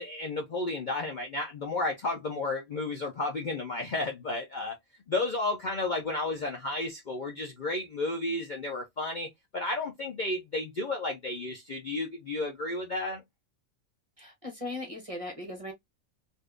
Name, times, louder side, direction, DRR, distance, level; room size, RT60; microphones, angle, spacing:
voice 1, 0.0-4.8 5.1-13.2, left 2 dB, 50° left, 0.6 m, -32 dB
voice 2, 14.2-15.7, left 1 dB, 30° right, 0.8 m, -38 dB
3.4 x 2.6 x 2.4 m
omnidirectional pair, 1.4 m